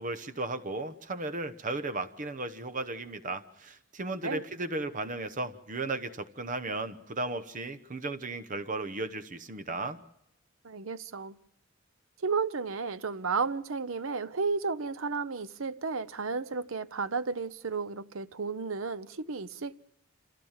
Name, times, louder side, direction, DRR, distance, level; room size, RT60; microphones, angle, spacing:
voice 1, 0.0-10.0, right 2 dB, 40° right, 1.0 m, -35 dB
voice 2, 10.6-11.4 12.2-19.8, right 4 dB, 85° right, 0.8 m, -33 dB
26.0 x 15.5 x 7.4 m
head